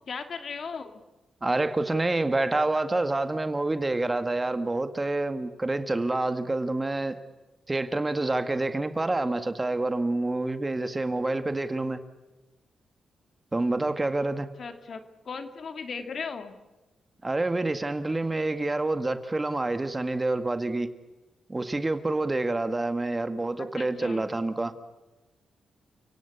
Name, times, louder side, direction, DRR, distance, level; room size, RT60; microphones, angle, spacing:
voice 1, 0.1-1.0 14.6-16.5 23.6-24.3, left 5 dB, 60° left, 2.3 m, -37 dB
voice 2, 1.4-7.2 7.7-12.0 13.5-14.5 17.2-20.9 21.5-24.7, right 2 dB, 25° right, 1.9 m, -27 dB
30.0 x 17.5 x 8.5 m
cardioid pair, 65°, 0 cm